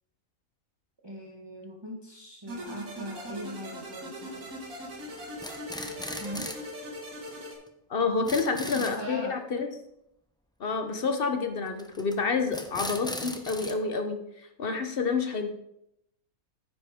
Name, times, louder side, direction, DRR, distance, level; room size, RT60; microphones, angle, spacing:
voice 1, 1.0-4.5 6.2-6.5 8.0-8.3 8.6-9.3, right 1 dB, 20° right, -3 dB, 1.3 m, -40 dB
sound 1, 2.5-7.5, equal, 75° right, 2.5 m, -40 dB
sound 2, 4.4-4.8 5.2-6.7 7.0-7.1 7.3-7.4 7.7-7.8 8.0-9.0 11.8-12.2 12.5-13.7, left 1 dB, 5° left, 0.4 m, -38 dB
voice 2, 7.9-9.7 10.6-15.5, left 4 dB, 45° left, 6 dB, 1.1 m, -29 dB
9.8 x 8.1 x 3.6 m, 0.78 s
omnidirectional pair, 1.4 m